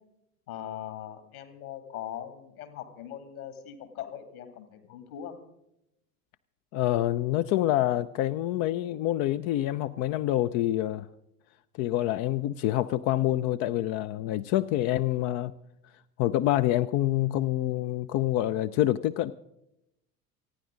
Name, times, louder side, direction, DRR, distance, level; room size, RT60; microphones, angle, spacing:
voice 1, 0.5-5.4, left 10 dB, 65° left, 8 dB, 2.8 m, -40 dB
voice 2, 6.7-11.1 11.8-15.5 16.2-19.3, left 14 dB, 35° left, 12 dB, 0.5 m, -26 dB
29.0 x 10.0 x 3.8 m, 0.83 s
figure-of-eight pair, 70°, 47 cm